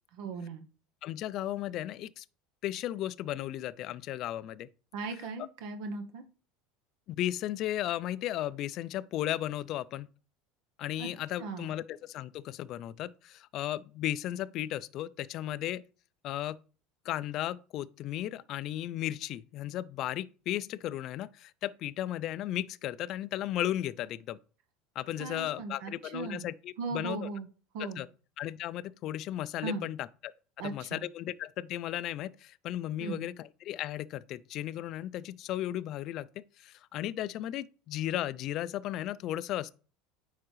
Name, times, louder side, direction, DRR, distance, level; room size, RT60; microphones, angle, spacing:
voice 1, 0.1-0.6 4.9-6.2 11.0-11.1 11.4-11.7 25.2-26.4 26.8-27.5 27.7-28.0 29.6-29.9 30.6-31.0 33.0-33.2, right 4 dB, 70° right, 0.8 m, -38 dB
voice 2, 1.0-2.2 2.6-4.7 7.1-10.1 10.8-15.8 16.2-16.6 17.1-24.4 25.0-27.3 27.8-28.1 28.4-30.3 30.6-39.7, left 13 dB, 50° left, 0.3 m, -35 dB
9.5 x 3.6 x 3.1 m
supercardioid pair, 125°, 0 cm